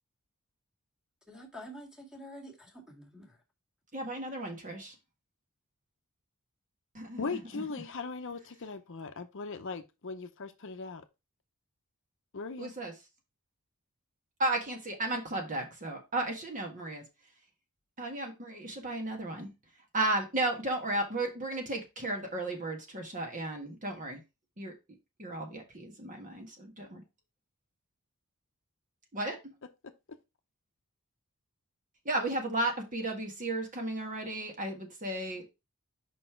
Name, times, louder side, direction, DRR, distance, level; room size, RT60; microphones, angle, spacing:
voice 1, 1.3-3.3, equal, 5° right, 2.0 m, -47 dB
voice 2, 3.9-4.9 6.9-7.6 12.6-12.9 14.4-17.0 18.0-19.5 19.9-24.2 24.6-24.7 25.2-27.0 29.1-29.5 32.0-35.5, right 2 dB, 35° right, 1.6 m, -34 dB
voice 3, 7.2-11.0 12.3-12.7, left 4 dB, 60° left, 0.7 m, -39 dB
5.5 x 4.2 x 4.4 m
head